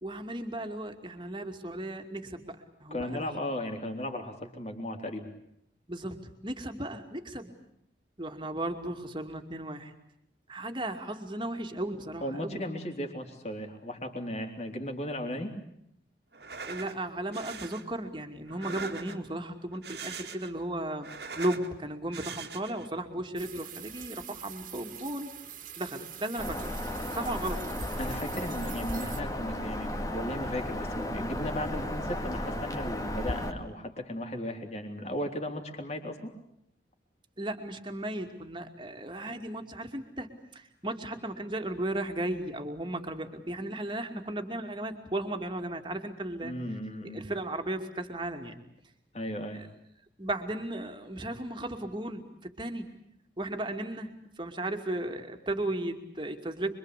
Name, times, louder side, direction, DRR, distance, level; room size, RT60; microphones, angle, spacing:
voice 1, 0.0-3.3 5.9-7.5 8.2-9.9 10.5-12.6 16.6-21.1 21.4-25.3 25.8-26.7 27.1-27.6 37.4-46.5 47.1-48.6 50.2-52.9 53.4-54.1 54.4-56.8, right 1 dB, 25° right, 5 dB, 2.6 m, -35 dB
voice 2, 2.9-5.3 12.2-15.5 28.0-36.3 46.4-47.2 49.1-49.6, left 1 dB, 35° left, 4 dB, 3.7 m, -36 dB
sound 1, 16.3-17.0 17.3-17.8 18.5-19.3 19.7-20.6 20.9-21.7 22.1-22.9, right 5 dB, 70° right, 2.2 m, -41 dB
Rain Wind and Windchimes, 23.4-29.2, right 10 dB, 45° right, 2.3 m, -45 dB
Bird vocalization bird call bird song, 26.4-33.5, left 1 dB, 20° left, 2.1 m, -34 dB
26.0 x 24.0 x 8.4 m, 0.76 s
head